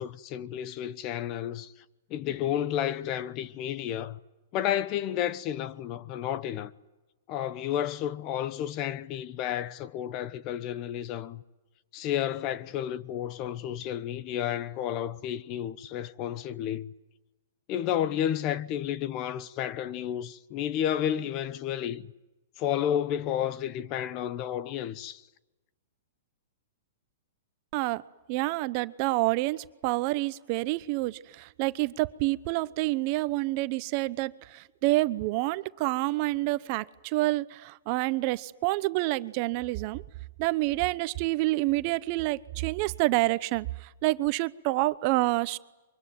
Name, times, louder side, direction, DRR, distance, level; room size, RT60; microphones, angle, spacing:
voice 1, 0.0-1.7 2.1-4.2 4.5-6.7 7.3-11.4 11.9-16.9 17.7-22.1 22.6-25.2, left 10 dB, 35° left, 1.0 m, -31 dB
voice 2, 28.3-40.0 40.4-45.6, right 20 dB, 45° right, 0.9 m, -28 dB
25.0 x 23.5 x 9.4 m
hypercardioid pair, 140°, 0 cm